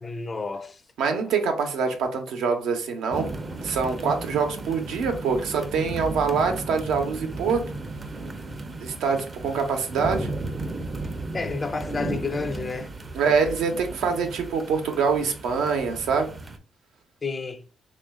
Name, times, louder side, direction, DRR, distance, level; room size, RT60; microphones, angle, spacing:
voice 1, 0.0-0.8 1.1-1.3 11.3-12.9 17.2-17.6, left 4 dB, 30° left, 0.4 m, -30 dB
voice 2, 1.0-3.3 3.6-7.6 8.8-10.3 13.1-16.3, right 5 dB, 85° right, 0.7 m, -25 dB
sound 1, 3.1-16.6, right 2 dB, 30° right, 0.5 m, -35 dB
3.0 x 2.5 x 3.5 m
cardioid pair, 90°, 0 cm